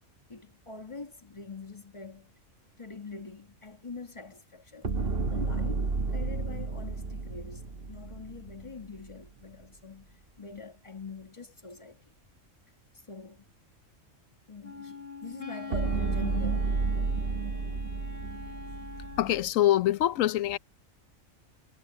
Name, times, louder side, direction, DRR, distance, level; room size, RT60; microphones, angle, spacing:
voice 1, 0.3-2.4 2.8-5.0 5.3-12.1 13.1-13.5 14.5-16.8, left 4 dB, 25° left, 2.0 m, -44 dB
sound 1, 4.8-9.1 15.7-19.5, right 4 dB, 50° right, 1.7 m, -31 dB
Wind instrument woodwind instrument, 14.6-19.4, left 4 dB, 45° left, 2.5 m, -43 dB
voice 2, 19.2-20.6, left 13 dB, 90° left, 1.0 m, -24 dB
omnidirectional pair, 1.3 m